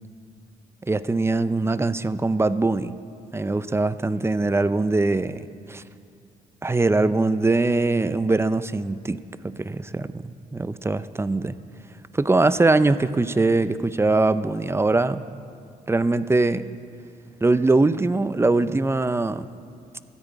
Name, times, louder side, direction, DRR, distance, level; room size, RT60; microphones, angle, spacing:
voice 1, 0.8-3.0 3.3-5.8 6.6-11.6 12.1-15.2 15.9-16.7 17.4-19.5, right 2 dB, 15° right, 14 dB, 0.5 m, -22 dB
13.5 x 10.5 x 8.2 m, 2.3 s
cardioid pair, 80°, 16 cm